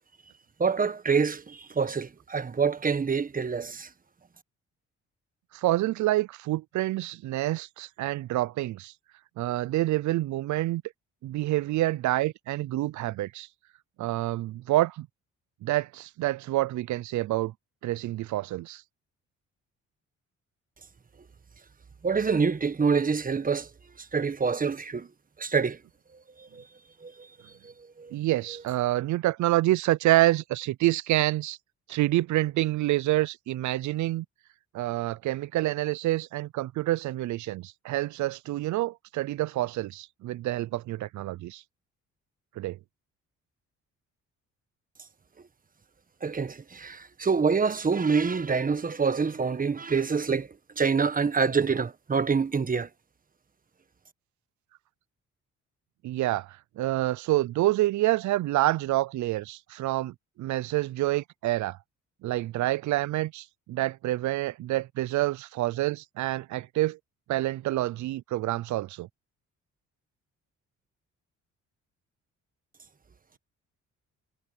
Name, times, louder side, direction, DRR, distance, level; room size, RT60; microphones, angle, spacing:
voice 1, 0.6-3.9 22.0-23.7 24.0-25.1 25.4-25.8 26.4-26.7 27.0-27.3 27.6-28.1 46.2-50.5 50.8-52.9, right 5 dB, 30° right, 1.4 m, -26 dB
voice 2, 5.5-8.9 9.4-10.8 11.2-13.5 14.0-15.1 15.6-17.5 17.8-18.8 28.1-31.6 31.9-34.3 34.7-41.6 42.6-42.8 56.0-61.8 62.2-67.0 67.3-69.1, right 16 dB, 75° right, 0.6 m, -27 dB
cardioid pair, 90°, 30 cm